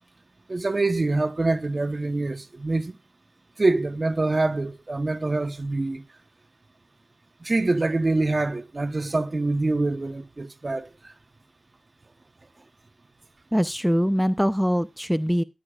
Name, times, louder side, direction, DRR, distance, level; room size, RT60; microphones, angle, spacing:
voice 1, 0.5-3.0 3.6-6.0 7.4-11.1, right 2 dB, 45° right, 1.0 m, -25 dB
voice 2, 13.5-15.4, equal, ahead, 0.5 m, -23 dB
13.5 x 11.0 x 2.4 m
cardioid pair, 40°, 0 cm